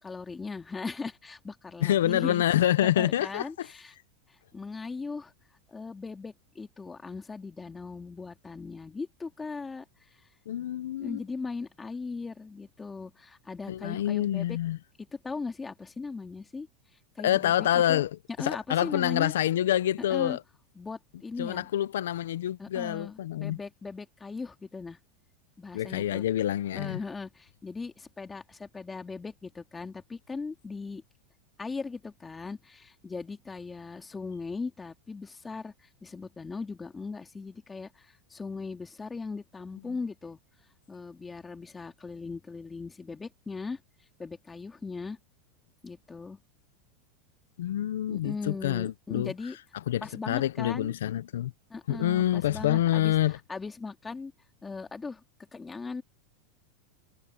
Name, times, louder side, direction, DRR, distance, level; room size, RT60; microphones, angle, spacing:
voice 1, 0.0-2.4 2.8-3.9 4.5-5.3 5.7-9.8 11.0-14.6 15.1-16.7 17.2-18.0 18.4-19.3 20.1-20.4 20.8-21.7 22.6-25.0 25.6-26.2 26.7-31.0 31.6-40.4 40.9-43.8 44.2-45.2 45.8-46.4 48.1-49.6 50.0-50.9 51.7-53.1 53.5-54.3 54.6-55.2 55.5-56.0, left 4 dB, 15° left, 2.6 m, -38 dB
voice 2, 1.8-3.7 10.5-11.2 13.7-14.8 17.2-18.1 18.4-20.4 21.4-23.6 25.7-27.0 47.6-49.3 49.7-51.5 51.9-53.4, left 12 dB, 85° left, 0.6 m, -27 dB
supercardioid pair, 125°, 0 cm